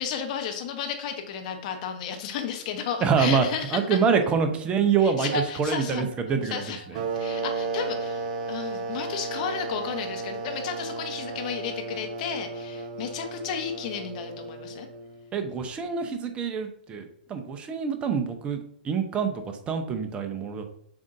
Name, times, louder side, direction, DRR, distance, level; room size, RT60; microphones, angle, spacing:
voice 1, 0.0-4.0 5.0-6.0 6.4-14.9, left 7 dB, 50° left, 5 dB, 0.9 m, -33 dB
voice 2, 3.0-3.4 3.7-5.3 5.6-6.6 15.3-18.6 18.8-20.6, right 6 dB, 20° right, 6 dB, 0.6 m, -25 dB
sound 1, 5.3-9.7 10.0-10.4 11.0-11.1, right 2 dB, 80° right, 0.5 m, -41 dB
sound 2, 6.9-15.3, right 3 dB, 50° right, 0.8 m, -34 dB
7.0 x 2.6 x 2.6 m, 0.70 s
hypercardioid pair, 125°, 5 cm